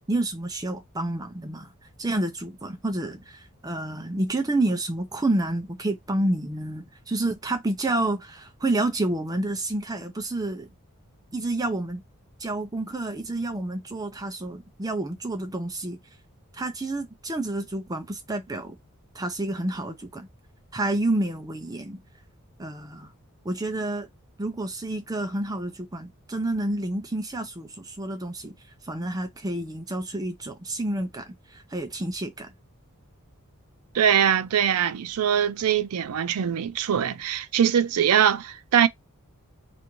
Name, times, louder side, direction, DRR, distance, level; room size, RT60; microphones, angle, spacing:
voice 1, 0.1-1.7 2.0-10.7 11.3-12.0 12.4-16.0 16.5-18.8 19.1-20.3 20.7-22.0 22.6-23.1 23.4-24.1 24.4-28.5 28.8-32.5, right 2 dB, 15° right, 0.5 m, -29 dB
voice 2, 33.9-38.9, right 9 dB, 85° right, 0.4 m, -22 dB
3.4 x 2.5 x 3.1 m
head